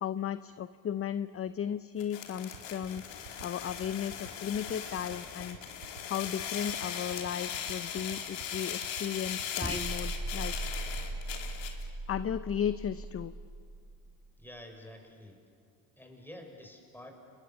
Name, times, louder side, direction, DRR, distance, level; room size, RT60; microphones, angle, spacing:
voice 1, 0.0-3.0 3.4-5.6 6.1-10.5 12.1-13.3, left 9 dB, 30° left, 13 dB, 0.7 m, -35 dB
sound 1, 2.0-11.8, left 8 dB, 65° left, 3.2 m, -39 dB
sound 2, 2.5-11.4, right 17 dB, 85° right, 2.1 m, -49 dB
sound 3, 9.6-14.2, right 2 dB, 10° right, 1.7 m, -38 dB
voice 2, 14.4-15.4 16.0-17.1, left 1 dB, 5° left, 3 dB, 6.1 m, -49 dB
30.0 x 21.5 x 7.2 m, 2.4 s
hypercardioid pair, 75°, 47 cm